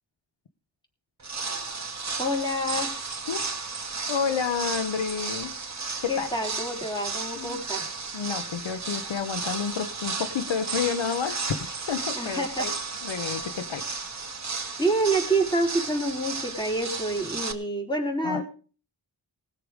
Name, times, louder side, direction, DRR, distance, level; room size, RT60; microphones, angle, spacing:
sound 1, 1.2-17.5, right 4 dB, 35° right, 2.0 m, -34 dB
voice 1, 2.2-3.0 6.1-7.9 12.1-12.7 14.8-18.4, right 1 dB, 10° left, 1 dB, 3.9 m, -27 dB
voice 2, 4.1-5.5 6.0-6.3 7.4-7.6 8.1-12.7 13.0-13.9 18.2-18.4, left 6 dB, 85° left, 10 dB, 1.0 m, -30 dB
20.0 x 6.9 x 5.0 m, 0.39 s
wide cardioid pair, 100°, 45 cm